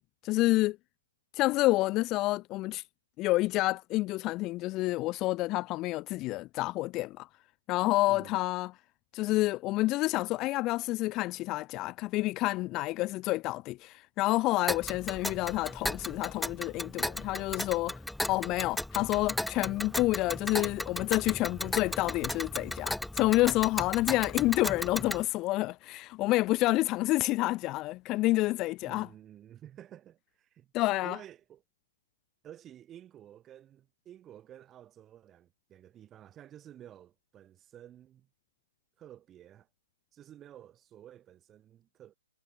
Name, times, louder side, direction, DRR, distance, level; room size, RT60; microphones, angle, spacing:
voice 1, 0.2-0.8 1.3-2.8 3.2-7.3 7.7-8.7 9.1-18.0 18.3-29.1 30.7-31.2, left 19 dB, 25° left, 0.8 m, -29 dB
Tick, 14.7-25.2, left 1 dB, ahead, 1.5 m, -36 dB
voice 2, 28.8-30.7 31.0-31.6 32.4-38.3 39.0-39.7 40.1-42.2, right 11 dB, 20° right, 3.8 m, -52 dB
hypercardioid pair, 140°, 0 cm